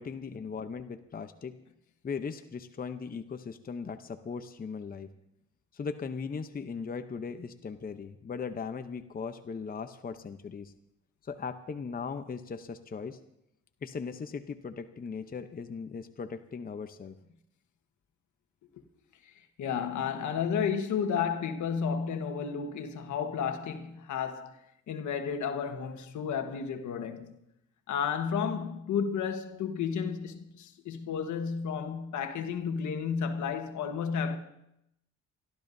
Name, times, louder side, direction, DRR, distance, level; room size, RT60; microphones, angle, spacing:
voice 1, 0.0-1.6 2.0-5.1 5.7-10.7 11.2-13.2 13.8-17.2, left 5 dB, 30° left, 0.8 m, -38 dB
voice 2, 19.6-24.5 24.9-27.3 27.9-34.4, left 6 dB, 75° left, 1.4 m, -32 dB
29.0 x 12.5 x 2.7 m
cardioid pair, 90°, 30 cm